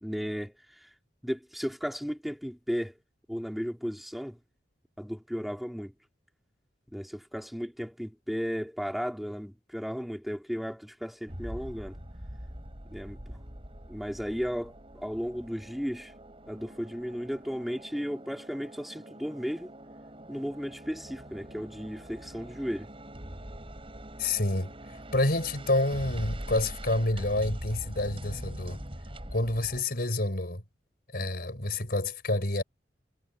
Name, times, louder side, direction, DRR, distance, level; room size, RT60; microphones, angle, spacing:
voice 1, 0.0-0.9 1.2-2.9 3.3-4.4 5.0-5.9 6.9-12.0 12.9-13.2 13.9-16.1 16.5-19.7 20.3-22.9, equal, ahead, 2.6 m, -35 dB
sound 1, 11.3-29.8, equal, 30° right, 7.6 m, -43 dB
voice 2, 24.2-24.7 25.1-28.8 29.3-30.6 31.1-32.6, left 2 dB, 60° left, 5.1 m, -28 dB
head